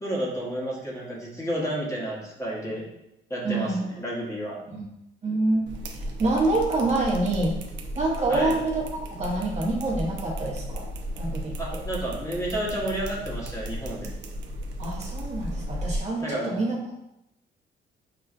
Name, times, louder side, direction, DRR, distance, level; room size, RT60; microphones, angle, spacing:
voice 1, 0.0-2.9 3.3-4.6 8.3-8.6 11.6-14.1 16.2-16.6, right 1 dB, 15° left, -4 dB, 1.1 m, -31 dB
voice 2, 3.4-3.8 4.7-4.8 5.2-5.7 6.0-7.5 7.9-10.9 11.2-11.8 14.8-16.9, right 2 dB, 35° right, -3 dB, 0.9 m, -26 dB
sound 1, 5.7-16.0, equal, 65° right, 0.6 m, -35 dB
5.8 x 2.3 x 2.4 m, 0.85 s
cardioid pair, 90°, 20 cm